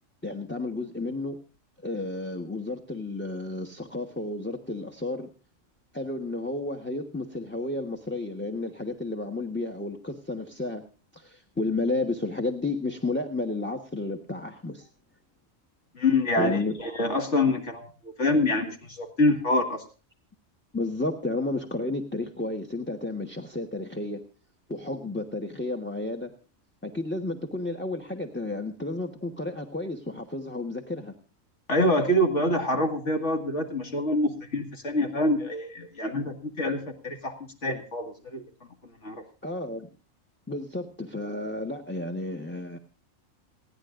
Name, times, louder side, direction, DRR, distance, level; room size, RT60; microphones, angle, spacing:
voice 1, 0.2-1.4 1.8-5.3 5.9-10.8 11.1-14.9 16.4-16.7 20.7-24.2 24.7-26.3 26.8-31.1 39.4-39.9 40.5-42.8, left 2 dB, 10° left, 4 dB, 1.2 m, -32 dB
voice 2, 16.0-17.9 18.2-19.8 31.7-37.3 37.6-38.4 39.0-39.2, left 1 dB, 60° left, 5 dB, 2.3 m, -26 dB
28.5 x 9.8 x 2.5 m, 0.34 s
omnidirectional pair, 1.4 m